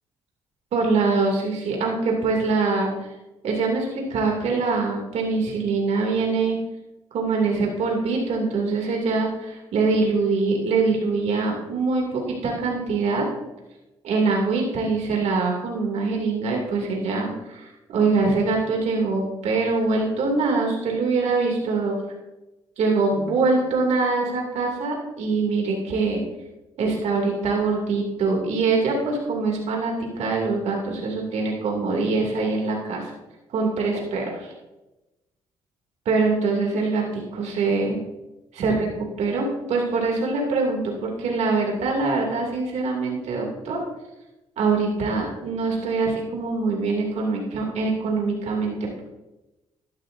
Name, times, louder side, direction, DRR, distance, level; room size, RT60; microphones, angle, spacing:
voice 1, 0.7-2.9 3.4-6.6 7.1-13.3 14.0-22.0 22.8-26.2 26.8-33.0 33.5-34.5 36.0-38.0 38.5-38.9 39.2-43.8 44.6-49.0, right 3 dB, 75° right, -1 dB, 2.7 m, -23 dB
12.0 x 11.5 x 2.7 m, 1.0 s
cardioid pair, 70°, 12 cm